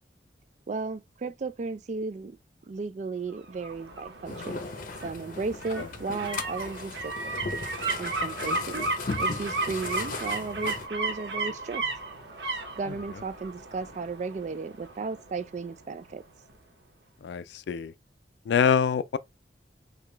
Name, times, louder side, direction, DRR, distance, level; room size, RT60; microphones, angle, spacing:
voice 1, 0.7-2.3 2.7-4.6 5.0-7.3 8.0-8.8 9.2-11.8 12.8-16.2, right 4 dB, 40° right, 0.3 m, -34 dB
sound 1, 3.3-16.1 16.5-16.6, right 3 dB, 75° right, 1.0 m, -35 dB
sound 2, 4.2-10.9, left 3 dB, 50° left, 0.7 m, -37 dB
voice 2, 17.2-17.9 18.5-19.2, left 7 dB, 75° left, 0.3 m, -25 dB
4.8 x 2.3 x 3.2 m
head